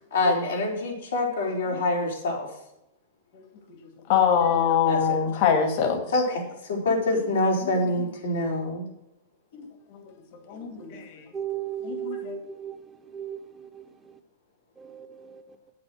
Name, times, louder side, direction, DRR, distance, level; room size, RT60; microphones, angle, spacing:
voice 1, 0.1-2.5 4.8-5.2 6.1-8.9, left 2 dB, 90° left, -2 dB, 4.4 m, -26 dB
voice 2, 4.1-6.0 9.5-9.6 10.5-11.2 11.8-12.4, left 7 dB, 55° left, 4 dB, 2.3 m, -23 dB
voice 3, 11.3-12.8 13.1-13.7 14.8-15.4, right 10 dB, 20° right, 7 dB, 1.0 m, -35 dB
8.7 x 8.7 x 6.3 m, 0.85 s
hypercardioid pair, 125°, 0 cm